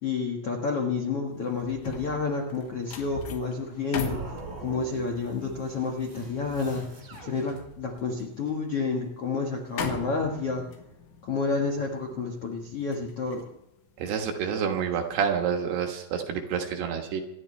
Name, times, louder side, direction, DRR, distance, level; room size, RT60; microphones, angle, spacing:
voice 1, 0.0-10.6 11.2-13.4, left 4 dB, 60° left, 1 dB, 1.5 m, -30 dB
sound 1, 1.4-14.7 15.1-15.4, left 5 dB, 80° left, 3.8 m, -41 dB
sound 2, 4.0-8.1, right 4 dB, 40° right, 3.6 m, -45 dB
voice 2, 14.0-17.2, right 7 dB, 70° right, 3 dB, 3.3 m, -28 dB
26.5 x 11.5 x 3.2 m, 0.88 s
omnidirectional pair, 5.2 m